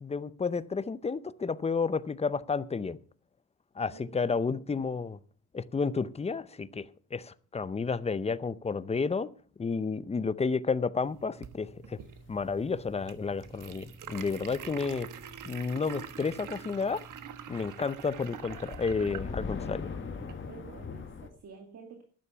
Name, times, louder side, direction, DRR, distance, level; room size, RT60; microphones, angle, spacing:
voice 1, 0.0-3.0 3.8-5.2 5.5-9.3 9.6-12.0 12.3-15.1 15.5-17.0 17.5-20.0, left 4 dB, 20° left, 0.6 m, -31 dB
voice 2, 3.9-4.4 20.5-22.0, right 5 dB, 55° right, 2.2 m, -49 dB
sound 1, 11.0-20.5, right 8 dB, 75° right, 1.3 m, -46 dB
sound 2, 12.0-16.6 16.9-17.1 17.5-21.3, left 5 dB, 40° left, 1.7 m, -42 dB
12.5 x 9.9 x 5.7 m
cardioid pair, 130°, 32 cm